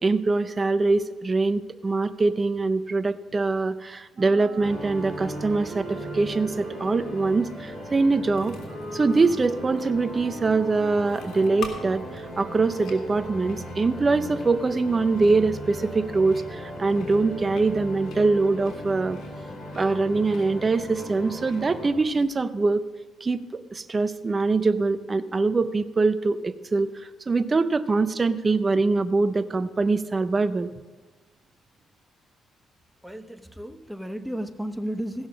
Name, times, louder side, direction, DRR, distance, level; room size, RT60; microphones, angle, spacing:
voice 1, 0.0-8.6 8.9-19.2 19.7-22.8 23.2-30.7, right 3 dB, 30° right, 12 dB, 0.5 m, -23 dB
Wind instrument woodwind instrument, 4.1-12.2, right 2 dB, 60° right, 2.6 m, -41 dB
sound 1, 4.5-22.3, left 5 dB, 75° left, 2.1 m, -48 dB
sound 2, 4.6-22.0, equal, 25° left, 2.7 m, -38 dB
voice 2, 33.0-35.3, equal, 5° right, 10 dB, 0.8 m, -33 dB
15.5 x 6.3 x 6.0 m, 1.3 s
cardioid pair, 90°, 0 cm